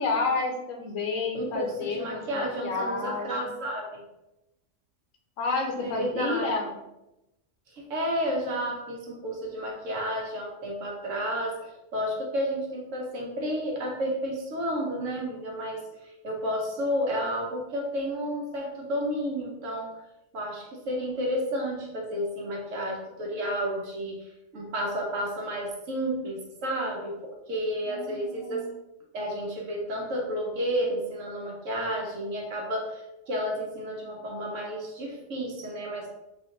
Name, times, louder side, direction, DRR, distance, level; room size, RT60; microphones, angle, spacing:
voice 1, 0.0-3.4 5.4-6.8 27.9-28.7, left 4 dB, 85° left, 2 dB, 1.1 m, -30 dB
voice 2, 1.3-4.0 5.8-6.5 7.7-20.0 20.3-24.3 24.5-28.7 29.1-33.0 33.3-36.1, equal, 75° right, -1 dB, 1.3 m, -31 dB
3.6 x 2.6 x 3.8 m, 0.93 s
omnidirectional pair, 1.3 m